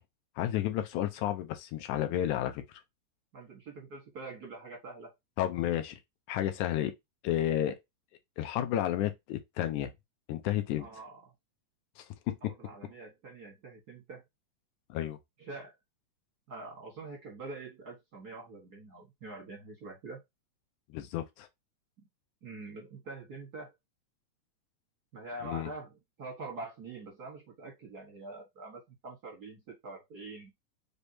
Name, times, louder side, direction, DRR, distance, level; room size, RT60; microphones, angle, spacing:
voice 1, 0.4-2.6 5.4-6.0 6.3-6.9 7.2-7.8 8.4-9.9 10.3-10.9 12.0-12.5 14.9-15.2 20.9-21.5 25.4-25.7, left 12 dB, 80° left, 2.2 m, -31 dB
voice 2, 3.3-5.1 10.8-11.2 12.4-14.2 15.4-15.7 16.5-20.2 22.0-22.1 22.4-23.7 25.1-30.5, right 3 dB, 55° right, 1.1 m, -45 dB
5.2 x 3.5 x 2.7 m
omnidirectional pair, 3.6 m